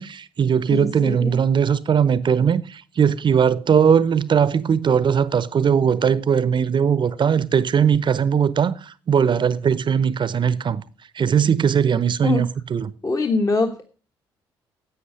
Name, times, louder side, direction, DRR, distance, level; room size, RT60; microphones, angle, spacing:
voice 1, 0.0-8.7 9.1-10.8 11.2-12.9, right 7 dB, 40° right, 0.9 m, -19 dB
voice 2, 0.7-1.4 12.2-12.4 13.0-13.9, left 3 dB, 30° left, 1.4 m, -23 dB
11.5 x 8.0 x 6.4 m
figure-of-eight pair, 45°, 12 cm